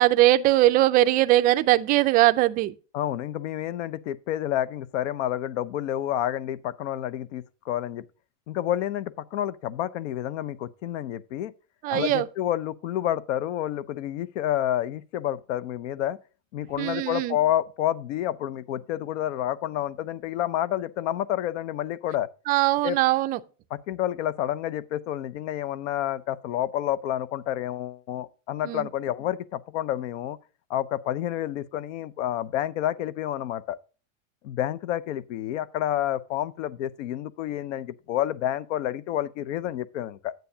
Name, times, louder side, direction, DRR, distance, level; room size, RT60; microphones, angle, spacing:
voice 1, 0.0-2.7 11.8-12.3 16.8-17.4 22.5-23.4 28.6-28.9, right 16 dB, 25° right, 0.3 m, -21 dB
voice 2, 2.9-8.0 8.5-11.5 11.9-16.2 16.5-22.3 22.8-23.0 23.7-30.4 30.7-33.8 34.4-40.3, left 12 dB, 75° left, 0.8 m, -29 dB
9.3 x 9.1 x 2.7 m
supercardioid pair, 145°, 37 cm